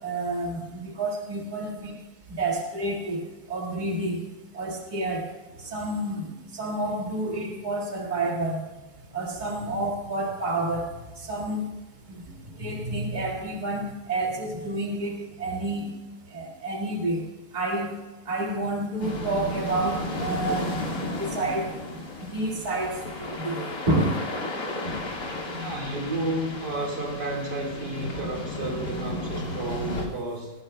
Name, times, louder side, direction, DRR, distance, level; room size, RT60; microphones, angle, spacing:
voice 1, 0.0-1.9 2.3-3.2 3.5-4.2 4.5-5.2 5.6-8.7 9.1-10.9 11.2-11.7 12.6-15.9 16.3-17.2 17.5-17.9 18.3-20.8 21.2-21.6 22.2-24.2, right 2 dB, 25° right, -2 dB, 2.0 m, -29 dB
voice 2, 1.6-1.9 12.3-12.6 25.5-30.5, right 2 dB, 70° right, -1 dB, 2.5 m, -32 dB
sound 1, 19.0-30.1, left 2 dB, 50° left, 2.2 m, -33 dB
17.5 x 17.0 x 2.2 m, 1.1 s
omnidirectional pair, 1.9 m